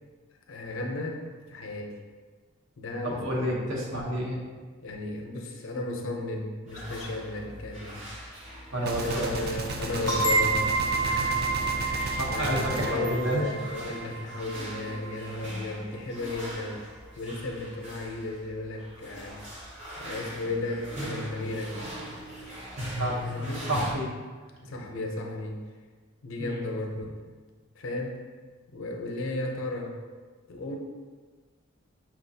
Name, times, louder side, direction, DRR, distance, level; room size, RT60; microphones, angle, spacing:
voice 1, 0.5-1.9 2.8-3.7 4.8-8.0 9.0-11.4 11.7-16.8 17.2-19.4 20.0-21.8 23.2-23.7 24.6-25.6 26.2-27.1 27.8-28.2 28.7-30.0 30.5-30.8, left 2 dB, 70° left, 1 dB, 0.6 m, -34 dB
voice 2, 3.0-4.4 8.7-9.4 12.2-13.5 23.0-24.1 24.6-24.7 26.4-26.6, right 1 dB, 70° right, -3 dB, 0.9 m, -30 dB
sound 1, 6.7-23.9, equal, 35° right, 0.9 m, -41 dB
Gunshot gunfire, 8.9-14.1, right 2 dB, 50° right, 0.4 m, -34 dB
sound 2, 10.1-15.5, right 3 dB, 20° left, 0.4 m, -29 dB
5.8 x 2.4 x 2.7 m, 1.4 s
head